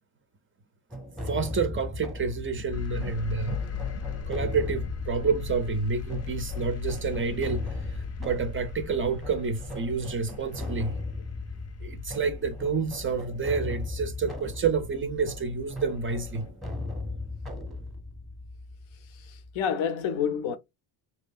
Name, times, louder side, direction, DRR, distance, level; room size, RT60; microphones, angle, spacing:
sound 1, 0.9-19.6, left 2 dB, ahead, 0.8 m, -38 dB
voice 1, 1.3-3.6 4.3-7.7 8.2-11.0 11.8-16.5, right 5 dB, 30° right, 0.4 m, -29 dB
sound 2, 2.7-16.5, left 7 dB, 35° left, 0.5 m, -39 dB
voice 2, 19.1-20.6, left 7 dB, 75° left, 0.7 m, -29 dB
2.8 x 2.5 x 2.3 m
cardioid pair, 115°, 48 cm